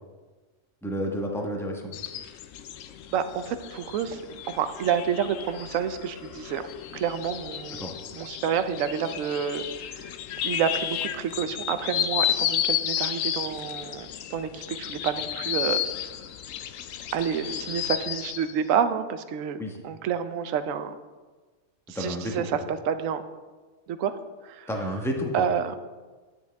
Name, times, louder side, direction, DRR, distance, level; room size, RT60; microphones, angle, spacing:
voice 1, 0.8-1.9 7.8-7.9 19.6-19.8 21.9-22.5 24.7-25.5, equal, ahead, 1 dB, 1.0 m, -30 dB
sound 1, 1.9-18.5, left 10 dB, 70° left, 0.9 m, -32 dB
voice 2, 3.1-4.2 4.5-6.6 6.9-7.8 8.1-9.6 9.9-10.1 10.4-15.8 17.1-20.9 21.9-23.2 23.9-24.7 25.3-25.7, right 8 dB, 70° right, 10 dB, 1.0 m, -29 dB
10.5 x 9.8 x 3.5 m, 1.3 s
omnidirectional pair, 1.5 m